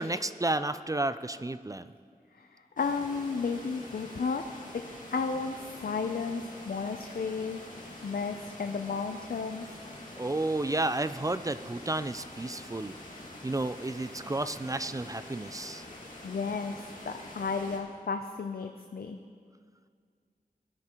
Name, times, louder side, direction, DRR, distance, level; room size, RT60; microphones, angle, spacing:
voice 1, 0.0-1.9 10.2-12.9 13.4-15.8, right 2 dB, 20° right, 13 dB, 0.3 m, -32 dB
voice 2, 2.3-4.5 4.7-4.8 5.1-7.6 8.0-9.6 15.9-19.2, left 5 dB, 75° left, 6 dB, 0.5 m, -33 dB
sound 1, 2.8-17.8, left 1 dB, 55° left, 2.0 m, -46 dB
18.5 x 9.6 x 3.0 m, 2.1 s
wide cardioid pair, 65°, 16 cm